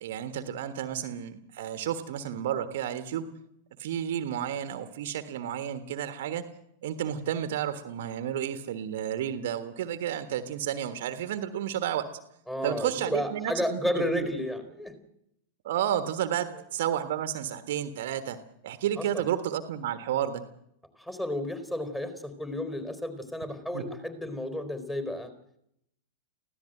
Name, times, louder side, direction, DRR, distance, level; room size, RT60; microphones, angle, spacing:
voice 1, 0.0-3.3 3.8-6.5 6.8-12.1 12.6-14.3 15.6-18.4 18.6-20.4 23.7-23.8, right 10 dB, 55° right, 11 dB, 1.5 m, -31 dB
voice 2, 12.5-14.9 19.0-19.3 21.0-25.3, left 1 dB, 10° left, 9 dB, 4.0 m, -32 dB
24.0 x 16.0 x 7.8 m, 0.75 s
figure-of-eight pair, 90°, 0 cm